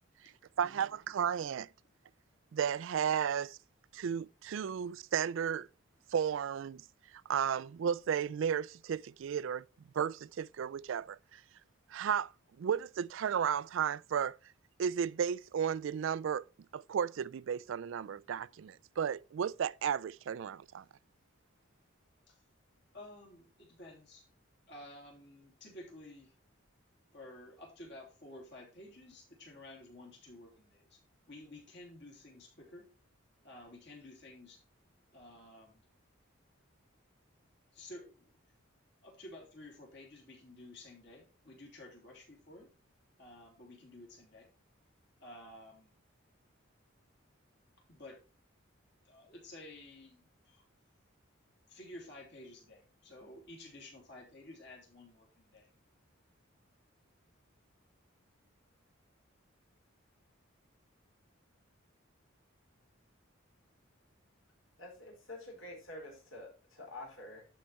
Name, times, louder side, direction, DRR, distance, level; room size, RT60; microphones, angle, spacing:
voice 1, 0.6-1.7 2.5-3.6 3.9-5.7 6.1-6.8 7.1-9.6 9.9-11.4 11.9-12.3 12.6-14.4 14.8-16.4 16.7-20.8, right 8 dB, 65° right, 0.3 m, -34 dB
voice 2, 22.9-24.3 24.7-26.3 27.1-31.0 31.3-32.9 33.4-34.6 35.1-35.8 37.7-38.3 39.0-42.7 43.2-44.5 45.2-45.9 47.9-48.2 49.0-50.7 51.7-55.7, left 1 dB, 55° left, 3.4 m, -52 dB
voice 3, 64.8-67.5, left 1 dB, 70° left, 4.2 m, -48 dB
11.5 x 4.7 x 4.3 m
head